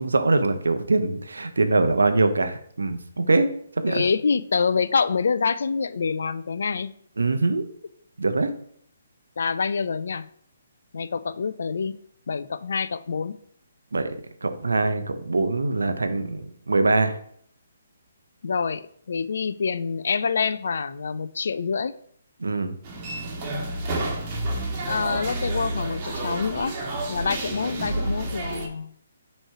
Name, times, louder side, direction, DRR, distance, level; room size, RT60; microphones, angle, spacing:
voice 1, 0.0-3.5 3.8-4.0 7.2-7.6 8.2-8.5 13.9-14.1 14.4-17.2 22.4-22.7, right 3 dB, 75° right, 8 dB, 0.7 m, -23 dB
voice 2, 3.9-6.9 9.4-10.3 10.9-11.9 12.3-13.4 18.4-21.9 24.9-26.7 27.1-28.9, left 5 dB, 60° left, 15 dB, 0.4 m, -26 dB
sound 1, 22.8-28.7, right 2 dB, 30° right, 1.4 m, -30 dB
6.2 x 3.2 x 4.7 m, 0.64 s
figure-of-eight pair, 135°, 0 cm